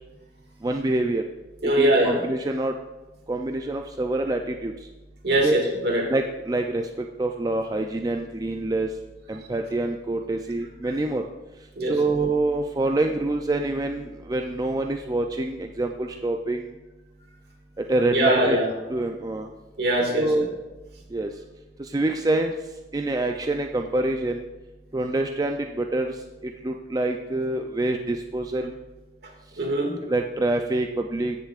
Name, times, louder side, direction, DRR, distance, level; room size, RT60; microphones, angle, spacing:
voice 1, 0.6-1.2 1.6-2.7 3.3-4.7 5.4-5.6 6.1-6.9 7.2-8.9 9.3-11.2 11.8-16.7 17.9-18.6 18.9-19.5 20.1-20.5 21.1-21.3 21.8-22.5 22.9-24.4 24.9-26.1 26.6-28.7 30.1-31.4, right 2 dB, 20° right, 4 dB, 0.4 m, -26 dB
voice 2, 1.6-2.2 5.2-6.1 11.8-12.0 18.1-18.8 19.8-20.5 29.2-30.0, right 1 dB, 65° right, 1 dB, 2.0 m, -22 dB
15.5 x 6.8 x 2.4 m, 1.1 s
head